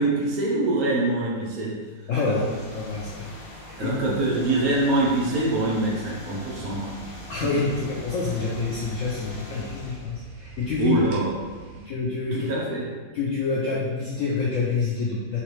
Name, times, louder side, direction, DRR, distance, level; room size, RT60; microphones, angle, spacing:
voice 1, 0.0-1.8 2.2-2.4 3.8-7.0 10.8-11.3 11.7-11.8 12.3-12.9, right 2 dB, 65° right, -4 dB, 1.0 m, -24 dB
voice 2, 2.1-3.3 3.6-4.4 7.3-11.2 11.8-12.8 13.1-15.4, left 4 dB, 75° left, -5 dB, 0.7 m, -27 dB
sound 1, 2.1-10.1, left 2 dB, 55° left, 1.2 m, -42 dB
sound 2, 6.5-11.9, right 2 dB, 85° right, 1.4 m, -44 dB
3.9 x 3.0 x 3.1 m, 1.4 s
omnidirectional pair, 1.9 m